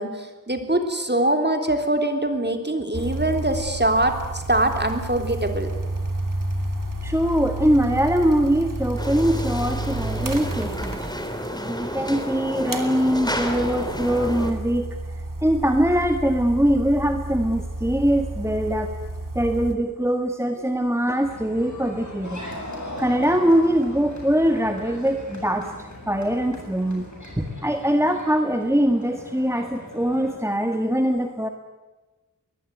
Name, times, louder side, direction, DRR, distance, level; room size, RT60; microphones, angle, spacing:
voice 1, 0.0-5.7, right 1 dB, 30° right, 5 dB, 3.5 m, -23 dB
sound 1, 2.9-11.6 12.7-19.7, right 2 dB, 75° right, 2.7 m, -31 dB
voice 2, 7.0-11.0 11.5-14.9 15.4-18.9 19.3-22.4 23.0-27.0 27.4-31.5, equal, 10° right, 5 dB, 1.8 m, -22 dB
sound 2, 9.0-14.5, equal, 10° left, 3.5 m, -31 dB
sound 3, 21.2-30.3, equal, 60° left, 7.6 m, -39 dB
23.0 x 20.0 x 9.3 m, 1.2 s
wide cardioid pair, 50°, 33 cm